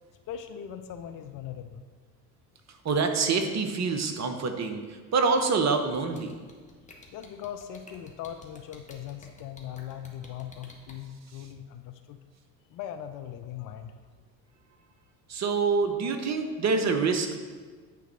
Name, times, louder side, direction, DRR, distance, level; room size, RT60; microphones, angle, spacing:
voice 1, 0.3-1.8 7.1-12.2 12.7-14.0, left 10 dB, 40° left, 7 dB, 0.6 m, -40 dB
voice 2, 2.8-6.4 15.3-17.4, right 4 dB, 30° right, 6 dB, 1.0 m, -26 dB
sound 1, 5.9-10.9, left 3 dB, 15° left, 1.6 m, -51 dB
9.3 x 3.9 x 6.3 m, 1.5 s
figure-of-eight pair, 60°, 50 cm